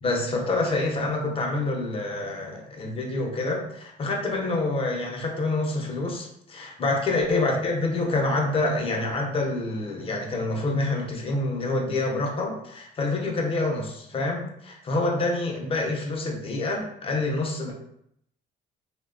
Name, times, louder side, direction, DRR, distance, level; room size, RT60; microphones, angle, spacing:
voice 1, 0.0-17.7, left 2 dB, 35° left, 1 dB, 0.6 m, -27 dB
3.0 x 2.1 x 2.4 m, 0.73 s
cardioid pair, 110°, 17 cm